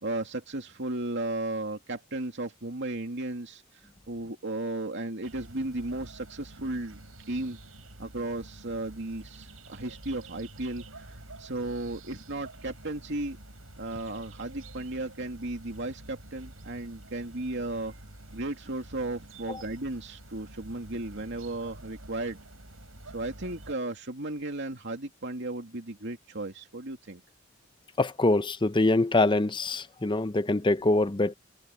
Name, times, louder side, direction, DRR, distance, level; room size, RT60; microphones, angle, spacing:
voice 1, 0.0-3.6 4.1-7.0 7.3-7.6 8.0-13.4 13.8-17.9 18.3-22.4 23.1-27.2, right 2 dB, 60° right, 2.6 m, -35 dB
sound 1, 5.2-23.7, right 1 dB, 85° right, 7.5 m, -48 dB
voice 2, 28.0-31.3, left 2 dB, 25° left, 0.7 m, -24 dB
head